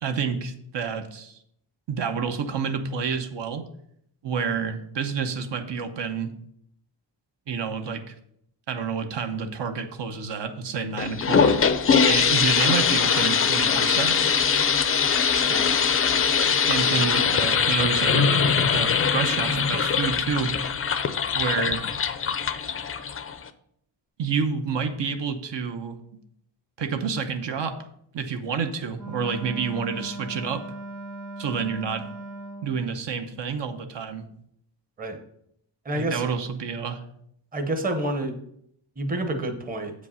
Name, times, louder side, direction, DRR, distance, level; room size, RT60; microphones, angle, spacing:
voice 1, 0.0-1.4 1.9-3.6 4.2-6.3 7.5-8.1 8.7-11.5 12.1-14.2 16.7-20.5 21.3-21.9 24.2-26.0 26.8-27.8 28.1-30.6 31.4-32.1 32.6-34.3 35.9-37.0, right 6 dB, 65° right, 7 dB, 0.9 m, -29 dB
sound 1, 11.0-23.5, left 6 dB, 30° left, 0.4 m, -22 dB
Wind instrument woodwind instrument, 28.9-32.8, right 2 dB, 85° right, 2.6 m, -38 dB
voice 2, 35.8-36.3 37.5-38.4 39.0-39.9, right 1 dB, 20° right, 6 dB, 0.8 m, -29 dB
8.2 x 5.2 x 5.6 m, 0.71 s
wide cardioid pair, 165°, 46 cm